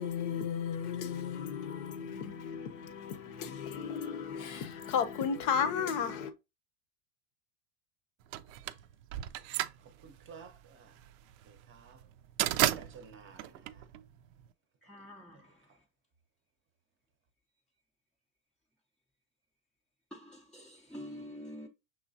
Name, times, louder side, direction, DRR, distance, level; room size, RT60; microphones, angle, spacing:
voice 1, 0.0-6.3, left 7 dB, 50° left, 0.7 m, -34 dB
sound 1, 8.3-14.5, right 14 dB, 70° right, 0.5 m, -34 dB
voice 2, 10.0-11.1 11.4-12.0 12.6-13.9 15.3-15.5, right 6 dB, 30° right, 0.7 m, -54 dB
voice 3, 14.8-15.4 20.1-21.7, equal, ahead, 0.4 m, -46 dB
6.1 x 3.0 x 2.7 m
supercardioid pair, 125°, 42 cm